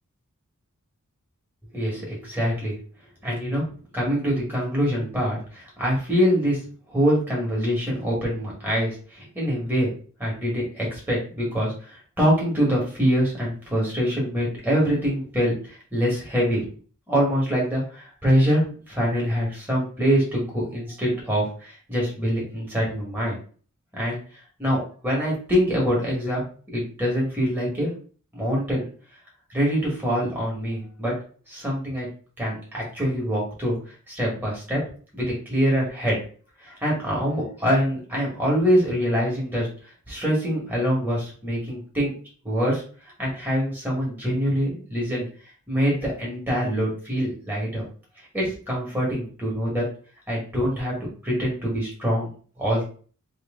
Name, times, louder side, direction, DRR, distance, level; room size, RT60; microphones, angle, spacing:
voice 1, 1.7-2.8 3.2-3.6 3.9-6.6 6.9-9.9 10.2-16.6 17.1-23.4 23.9-24.2 24.6-26.4 26.7-27.9 28.3-28.8 29.5-31.1 31.5-32.1 32.4-33.7 34.1-34.8 35.1-36.2 36.6-39.7 40.1-42.1 42.4-42.8 43.2-45.2 45.7-47.8 48.3-49.8 50.3-51.0 51.2-52.3 52.6-52.8, equal, 10° right, -4 dB, 1.6 m, -24 dB
3.2 x 2.9 x 3.6 m, 0.42 s
head